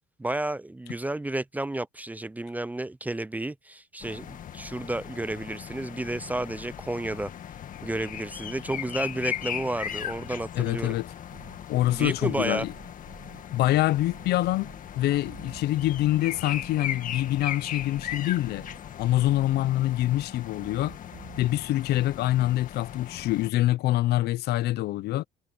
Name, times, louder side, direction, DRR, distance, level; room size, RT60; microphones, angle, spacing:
voice 1, 0.2-7.3 7.8-11.0 11.9-12.7, right 2 dB, 10° right, 0.5 m, -31 dB
sound 1, 4.0-23.5, left 10 dB, 50° left, 1.8 m, -38 dB
voice 2, 10.5-11.1 11.7-12.7 13.5-14.7 15.0-18.7 19.0-21.0 21.4-25.2, left 15 dB, 75° left, 0.7 m, -25 dB
sound 2, 11.3-21.8, right 12 dB, 70° right, 5.2 m, -52 dB
cardioid pair, 110°, 17 cm